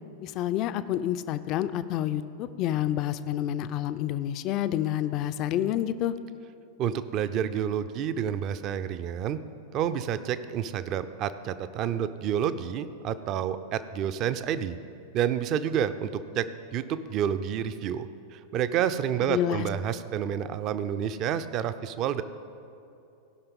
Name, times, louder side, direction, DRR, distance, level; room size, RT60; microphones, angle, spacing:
voice 1, 0.2-6.2 19.2-19.7, left 12 dB, 40° left, 12 dB, 0.4 m, -28 dB
voice 2, 6.8-9.4 9.7-14.8 15.1-16.5 16.7-22.2, right 9 dB, 35° right, 12 dB, 0.5 m, -29 dB
16.5 x 5.7 x 5.3 m, 2.7 s
figure-of-eight pair, 90°, 0 cm